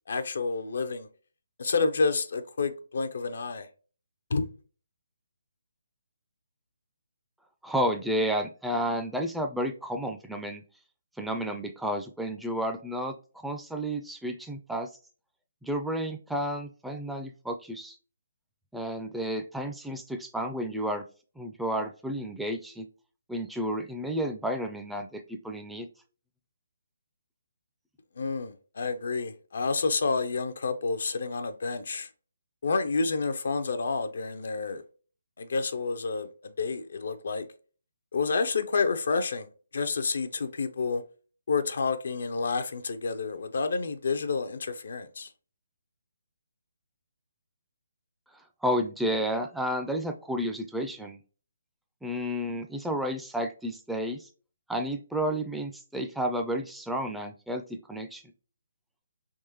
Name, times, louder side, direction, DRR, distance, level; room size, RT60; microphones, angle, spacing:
voice 1, 0.1-1.1 1.6-3.7 4.3-4.4 28.2-32.1 32.6-34.8 35.4-37.5 38.1-39.5 39.7-41.0 41.5-45.3, left 4 dB, 65° left, 0.4 m, -29 dB
voice 2, 7.6-10.6 11.2-13.1 13.4-14.9 15.6-18.0 18.7-21.0 21.4-22.9 23.3-25.9 48.6-51.2 52.0-54.2 54.7-57.6 57.9-58.2, equal, ahead, 0.4 m, -31 dB
3.5 x 3.0 x 2.8 m
figure-of-eight pair, 145°, 0 cm